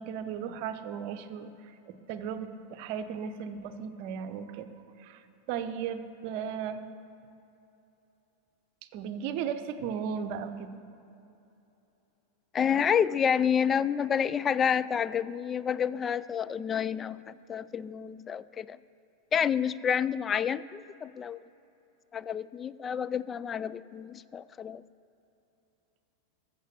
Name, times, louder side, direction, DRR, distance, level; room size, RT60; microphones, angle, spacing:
voice 1, 0.0-4.7 5.0-5.2 5.5-6.8 8.9-10.7, right 7 dB, 45° right, 9 dB, 0.7 m, -36 dB
voice 2, 12.5-18.8 19.3-21.4 22.1-24.8, left 7 dB, 20° left, 17 dB, 0.3 m, -29 dB
14.5 x 6.7 x 6.5 m, 2.9 s
figure-of-eight pair, 90°, 0 cm